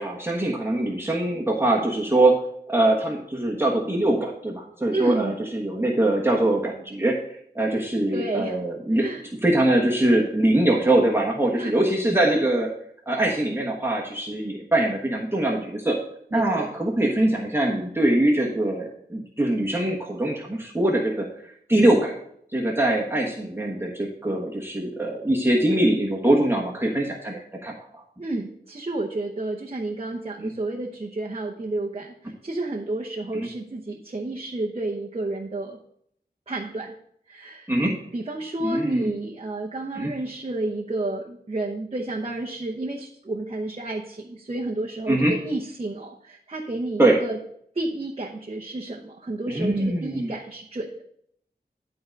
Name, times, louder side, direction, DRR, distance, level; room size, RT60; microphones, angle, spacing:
voice 1, 0.0-2.4 2.7-7.2 7.5-9.0 9.4-12.7 13.1-16.0 16.3-21.3 21.7-22.1 22.5-27.7 30.4-30.5 33.3-33.5 37.7-37.9 38.6-39.1 40.0-40.1 45.1-45.3 47.0-47.2 49.5-50.3, right 1 dB, 15° right, -2 dB, 1.3 m, -22 dB
voice 2, 4.9-5.3 8.1-8.6 8.9-9.3 11.6-11.7 16.3-16.7 28.2-35.8 36.5-36.9 37.3-37.7 38.1-47.4 47.7-51.0, right 2 dB, 35° right, -1 dB, 0.9 m, -31 dB
11.5 x 3.9 x 5.2 m, 0.68 s
wide cardioid pair, 70°, 17 cm